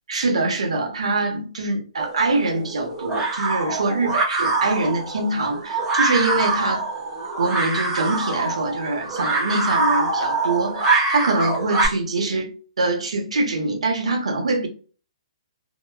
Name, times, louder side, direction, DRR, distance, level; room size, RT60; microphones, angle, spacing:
voice 1, 0.1-6.9 7.3-14.7, right 2 dB, 85° right, 0.9 m, -24 dB
sound 1, 2.0-11.9, right 3 dB, 15° right, 0.6 m, -24 dB
2.8 x 2.1 x 2.3 m
hypercardioid pair, 160°, 3 cm